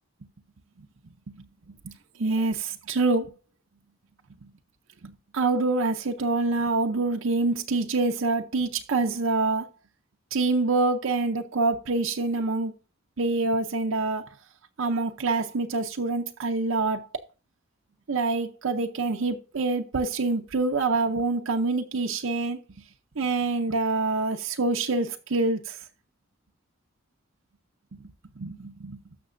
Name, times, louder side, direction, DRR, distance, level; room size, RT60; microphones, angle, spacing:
voice 1, 2.2-3.3 5.0-9.7 10.3-12.7 13.2-14.3 14.8-17.0 18.1-22.6 23.2-25.8 28.4-29.0, right 3 dB, 70° right, 0.6 m, -26 dB
13.0 x 5.8 x 2.6 m
head